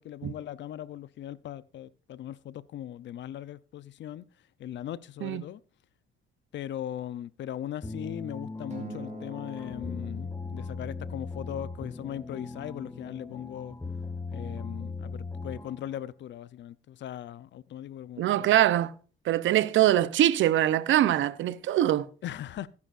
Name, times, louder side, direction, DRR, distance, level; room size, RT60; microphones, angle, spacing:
voice 1, 0.0-4.2 4.6-5.6 6.5-13.8 14.3-18.5 22.2-22.7, left 11 dB, 65° left, 0.6 m, -39 dB
sound 1, 7.8-15.9, left 3 dB, 15° left, 0.9 m, -38 dB
Acoustic guitar, 8.7-11.1, right 5 dB, 35° right, 2.6 m, -47 dB
sound 2, 9.6-12.0, left 7 dB, 85° left, 3.1 m, -51 dB
voice 2, 18.2-18.9 19.3-22.1, right 13 dB, 75° right, 0.7 m, -23 dB
15.5 x 9.7 x 2.5 m
cardioid pair, 90°, 20 cm